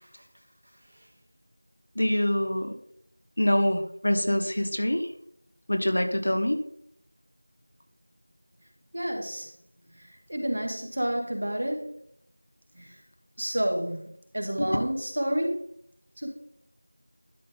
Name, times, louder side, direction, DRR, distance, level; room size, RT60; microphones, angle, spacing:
voice 1, 2.0-2.7 3.4-5.1 5.7-6.6 14.6-14.7, left 1 dB, 40° left, 7 dB, 0.9 m, -25 dB
voice 2, 8.9-9.5 10.0-11.9 12.8-12.9 13.4-15.6 16.2-16.3, equal, 40° right, 2 dB, 1.8 m, -30 dB
12.0 x 5.8 x 3.7 m, 0.68 s
figure-of-eight pair, 180°, 0 cm